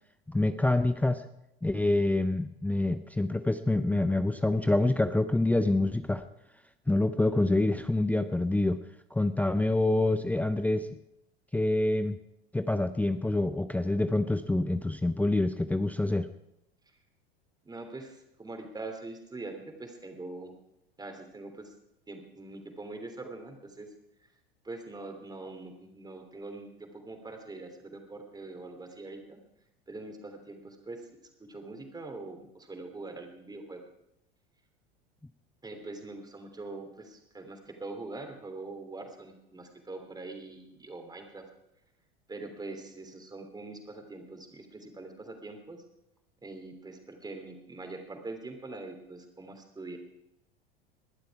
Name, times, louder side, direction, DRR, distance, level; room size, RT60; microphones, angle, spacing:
voice 1, 0.3-1.2 1.6-6.3 6.9-8.8 9.1-10.9 11.5-12.1 12.5-16.3, left 2 dB, 5° left, 10 dB, 0.6 m, -26 dB
voice 2, 17.6-20.5 21.0-21.7 22.1-23.9 24.6-29.4 29.9-31.0 31.5-33.8 35.6-41.4 42.3-45.8 46.4-50.0, right 2 dB, 10° right, 5 dB, 3.1 m, -43 dB
20.0 x 11.5 x 4.8 m, 0.83 s
figure-of-eight pair, 85°, 31 cm